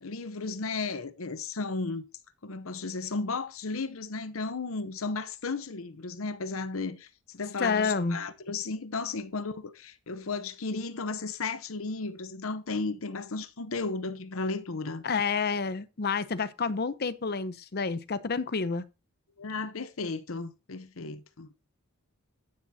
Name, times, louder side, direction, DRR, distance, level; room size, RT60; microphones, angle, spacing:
voice 1, 0.0-2.0 2.4-15.0 19.4-21.5, left 3 dB, 75° left, 0.8 m, -34 dB
voice 2, 7.6-8.2 15.0-18.8, left 5 dB, 50° left, 0.7 m, -29 dB
10.5 x 9.6 x 2.7 m
head